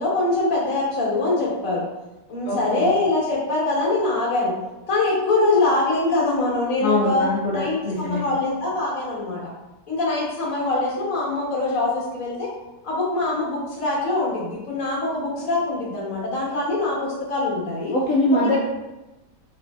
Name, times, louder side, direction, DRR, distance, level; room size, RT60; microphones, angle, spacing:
voice 1, 0.0-1.8 2.3-4.5 4.9-9.4 9.9-12.5 12.8-17.9, left 2 dB, 55° left, -5 dB, 1.5 m, -23 dB
voice 2, 2.4-2.9 6.8-8.2 17.9-18.6, left 1 dB, 70° left, -4 dB, 0.8 m, -22 dB
3.7 x 3.2 x 2.3 m, 1.0 s
omnidirectional pair, 1.9 m